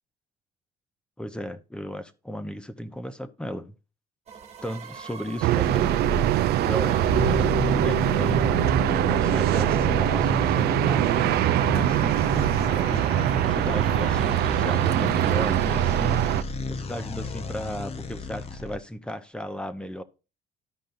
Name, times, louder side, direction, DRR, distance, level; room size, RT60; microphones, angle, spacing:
voice 1, 1.2-3.8 4.6-6.0 6.6-16.3 16.7-20.0, equal, 5° left, 0.8 m, -36 dB
sound 1, 4.3-13.5 14.4-14.5 14.8-16.8 17.6-17.7, right 6 dB, 40° right, 1.5 m, -43 dB
sound 2, 5.4-16.4, right 14 dB, 70° right, 0.5 m, -23 dB
sound 3, 5.5-18.8, left 2 dB, 35° left, 0.8 m, -31 dB
13.0 x 5.3 x 2.6 m
cardioid pair, 110°, 17 cm